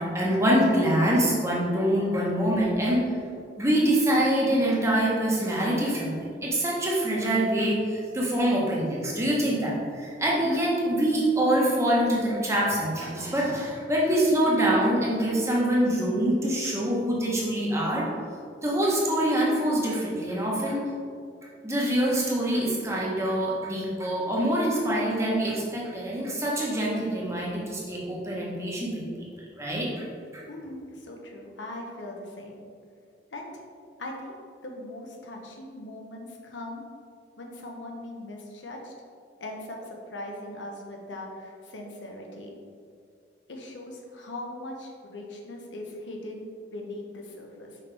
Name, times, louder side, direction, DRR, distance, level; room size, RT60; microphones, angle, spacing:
voice 1, 0.0-3.0 3.6-18.0 18.6-20.8 21.6-29.3 29.6-30.0 30.3-30.4, right 1 dB, 15° right, -4 dB, 1.1 m, -25 dB
voice 2, 30.5-32.6 33.3-33.6 34.0-34.4 34.6-36.8 37.4-38.9 39.4-42.5 43.5-47.8, left 1 dB, 85° left, 0 dB, 1.0 m, -40 dB
5.6 x 5.4 x 3.4 m, 2.3 s
head